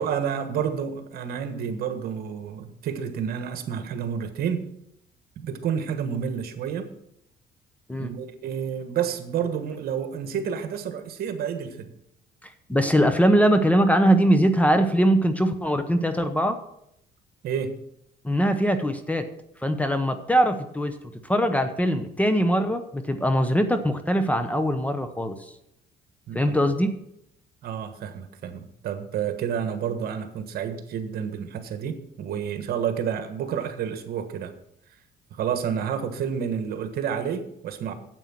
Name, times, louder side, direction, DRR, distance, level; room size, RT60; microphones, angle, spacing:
voice 1, 0.0-4.6 5.4-6.9 8.0-11.9 17.4-17.8 26.3-26.6 27.6-34.5 35.3-37.9, right 8 dB, 65° right, 8 dB, 1.4 m, -29 dB
voice 2, 12.7-16.6 18.2-19.3 19.6-20.9 21.2-25.4 26.3-26.9, equal, 10° left, 9 dB, 0.9 m, -21 dB
9.2 x 8.0 x 6.0 m, 0.76 s
cardioid pair, 110°, 17 cm